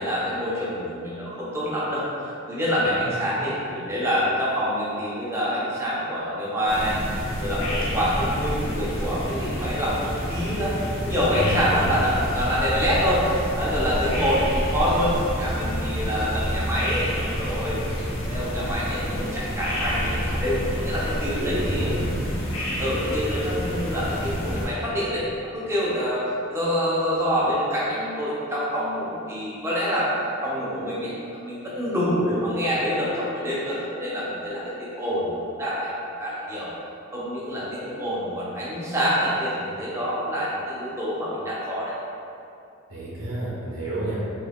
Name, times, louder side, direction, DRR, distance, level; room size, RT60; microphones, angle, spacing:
voice 1, 0.0-7.0 7.4-10.8 11.0-17.8 18.3-22.0 22.8-25.3 25.5-30.1 30.4-35.9 36.2-36.7 37.1-41.9, equal, 15° right, -8 dB, 0.6 m, -26 dB
sound 1, 6.7-24.7, equal, 75° left, 0.9 m, -28 dB
voice 2, 11.3-12.0 20.9-21.1 21.4-22.1 42.9-44.2, right 1 dB, 65° right, -8 dB, 0.7 m, -30 dB
3.3 x 2.4 x 3.4 m, 2.7 s
head